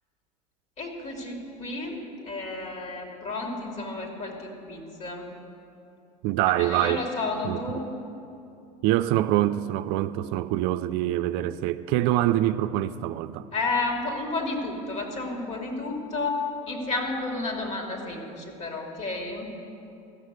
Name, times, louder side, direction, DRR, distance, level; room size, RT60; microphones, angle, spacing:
voice 1, 0.8-5.3 6.5-7.8 13.5-19.6, left 3 dB, 35° left, 2.8 m, -31 dB
voice 2, 6.2-7.0 7.4-7.8 8.8-13.5, right 14 dB, 60° right, 0.4 m, -25 dB
14.5 x 6.4 x 8.1 m
hypercardioid pair, 85°, 19 cm